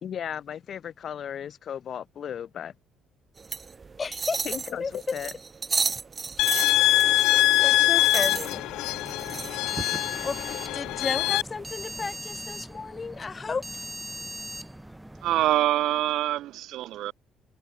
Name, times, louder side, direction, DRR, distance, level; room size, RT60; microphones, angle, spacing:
voice 1, 0.0-2.7 4.4-5.3, left 9 dB, 50° left, 2.5 m, -35 dB
sound 1, 3.4-12.2, right 5 dB, 30° right, 0.9 m, -34 dB
voice 2, 4.0-4.4 4.8-5.2 6.6-6.7 7.6-8.6 10.2-10.4 10.7-13.9, left 4 dB, 30° left, 2.3 m, -33 dB
sound 2, 6.4-11.4, left 17 dB, 85° left, 1.2 m, -23 dB
sound 3, 8.2-15.5, right 1 dB, 5° right, 6.7 m, -40 dB
voice 3, 15.2-17.1, right 14 dB, 75° right, 3.1 m, -25 dB
cardioid pair, 105°, 0 cm